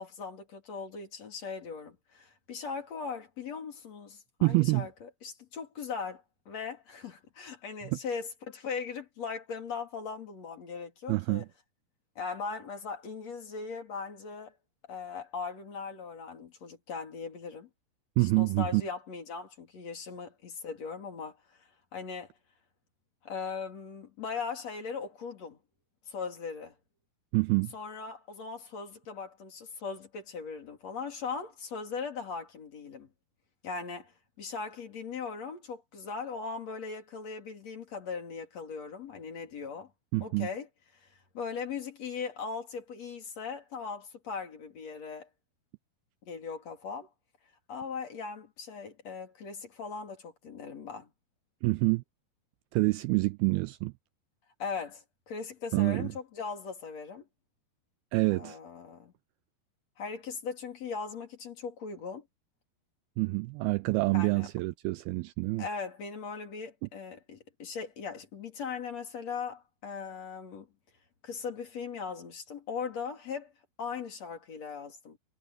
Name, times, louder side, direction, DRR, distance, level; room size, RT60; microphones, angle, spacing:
voice 1, 0.0-11.4 12.2-14.6 14.9-17.7 18.2-21.6 21.9-22.3 23.2-25.6 26.1-26.7 27.7-33.1 33.6-39.9 40.2-40.7 41.0-41.1 41.3-45.3 46.2-47.1 47.7-51.1 54.6-57.2 58.3-59.1 60.0-62.2 64.1-64.5 65.6-70.7 71.2-73.5 73.8-75.2, left 5 dB, 40° left, 4.0 m, -39 dB
voice 2, 4.4-4.9 11.1-11.5 18.2-18.8 27.3-27.7 40.1-40.5 51.6-52.0 52.7-53.9 55.7-56.1 58.1-58.6 63.2-65.6, right 24 dB, 85° right, 2.2 m, -27 dB
omnidirectional pair, 4.9 m